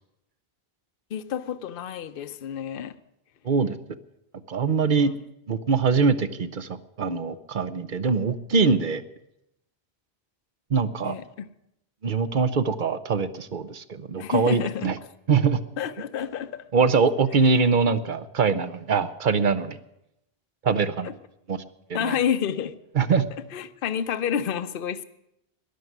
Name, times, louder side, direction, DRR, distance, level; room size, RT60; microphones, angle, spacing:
voice 1, 1.1-2.9 4.9-5.2 11.0-11.5 14.2-14.9 15.8-16.6 20.7-20.8 21.0-21.1 21.9-22.8 23.5-25.0, left 8 dB, 60° left, 12 dB, 0.9 m, -29 dB
voice 2, 4.5-5.1 5.5-6.7 7.0-9.0 10.7-11.1 12.0-15.0 15.3-15.6 16.7-19.8 20.6-21.1 21.5-21.6 21.9-22.2 23.0-23.2, right 5 dB, 55° right, 13 dB, 0.9 m, -23 dB
13.5 x 11.0 x 9.2 m, 0.85 s
omnidirectional pair, 1.1 m